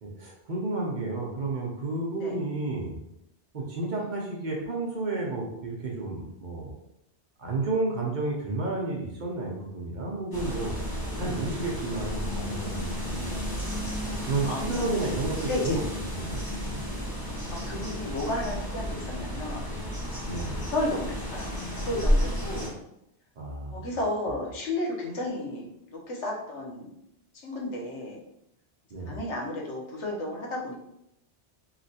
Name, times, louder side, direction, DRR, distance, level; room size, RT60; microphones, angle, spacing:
voice 1, 0.0-3.0 3.5-6.7 7.4-10.7 11.1-13.5 14.1-15.8 16.1-16.9 20.2-20.6 23.4-23.9 28.9-29.2, right 2 dB, 50° right, -2 dB, 0.7 m, -32 dB
sound 1, 10.3-22.7, equal, 20° left, 0.9 m, -32 dB
voice 2, 14.1-15.0 15.4-15.8 17.5-19.7 20.6-22.7 23.7-26.9 27.4-28.2 29.1-30.7, left 1 dB, 90° left, -2 dB, 1.2 m, -33 dB
3.1 x 2.9 x 2.8 m, 0.80 s
omnidirectional pair, 1.2 m